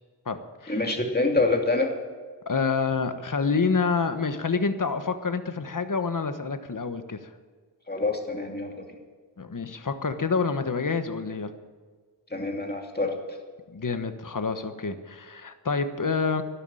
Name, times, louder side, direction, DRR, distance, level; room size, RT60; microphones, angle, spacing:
voice 1, 0.7-1.9 7.9-8.9 12.3-13.1, left 2 dB, 20° left, 2 dB, 2.6 m, -26 dB
voice 2, 2.5-7.2 9.4-11.5 13.7-16.4, left 5 dB, 45° left, 9 dB, 1.3 m, -27 dB
12.0 x 11.5 x 9.0 m, 1.5 s
wide cardioid pair, 65°, 44 cm